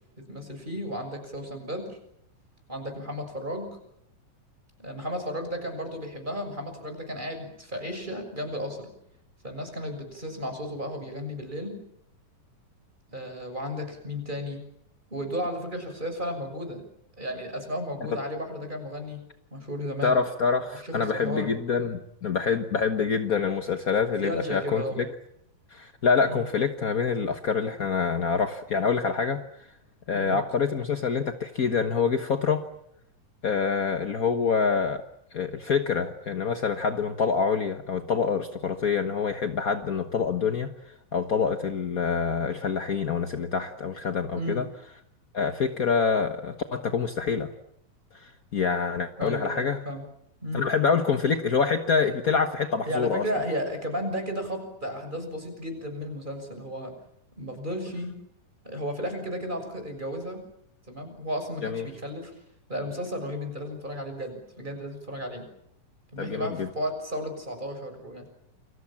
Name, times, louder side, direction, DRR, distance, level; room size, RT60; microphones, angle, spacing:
voice 1, 0.2-2.0 2.7-3.8 4.8-8.9 9.4-11.8 13.1-14.6 15.1-16.8 17.2-19.2 19.5-20.2 20.7-21.5 24.2-25.0 26.3-26.4 30.1-30.4 44.3-44.6 49.2-50.0 50.4-50.7 52.9-56.9 57.4-58.2 58.6-60.4 60.9-62.3 62.7-65.5 66.1-68.2, equal, 15° right, 6 dB, 6.6 m, -34 dB
voice 2, 20.0-25.1 25.7-29.4 30.1-32.6 33.4-35.0 35.3-40.7 41.1-44.6 45.3-47.5 48.2-49.8 50.5-53.2 61.6-61.9 66.2-66.7, left 5 dB, 65° left, 7 dB, 0.8 m, -26 dB
29.5 x 23.5 x 7.4 m, 0.74 s
omnidirectional pair, 3.6 m